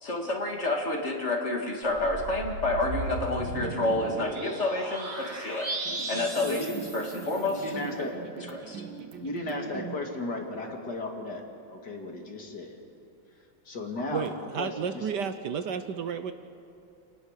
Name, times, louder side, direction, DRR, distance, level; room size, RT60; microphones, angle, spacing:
voice 1, 0.0-5.7 6.1-7.6 8.0-8.1 8.5-8.8, left 2 dB, 35° left, 1 dB, 2.5 m, -29 dB
sound 1, 1.9-7.7, right 2 dB, 30° right, 3.5 m, -36 dB
sound 2, 5.8-10.0, right 6 dB, 85° right, 2.1 m, -42 dB
voice 2, 6.4-6.8 7.5-8.1 9.2-11.4 11.7-12.8 13.7-14.3 14.6-15.1, left 2 dB, 55° left, 2 dB, 2.8 m, -35 dB
voice 3, 14.1-16.3, right 7 dB, 65° right, 10 dB, 1.4 m, -32 dB
28.0 x 18.5 x 6.6 m, 2.6 s
omnidirectional pair, 2.1 m